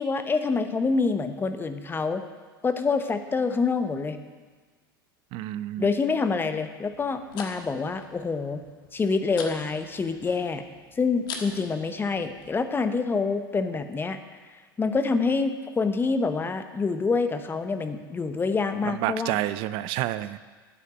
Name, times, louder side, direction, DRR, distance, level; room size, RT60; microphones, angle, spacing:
voice 1, 0.0-2.2 2.6-4.2 5.8-8.6 8.9-10.6 11.0-14.2 14.8-19.4, left 4 dB, 20° left, 9 dB, 1.0 m, -26 dB
voice 2, 5.3-5.9 18.8-20.4, right 14 dB, 45° right, 15 dB, 0.5 m, -29 dB
sound 1, 6.9-12.7, left 5 dB, 60° left, 1.6 m, -44 dB
8.9 x 8.3 x 8.8 m, 1.5 s
figure-of-eight pair, 75°, 12 cm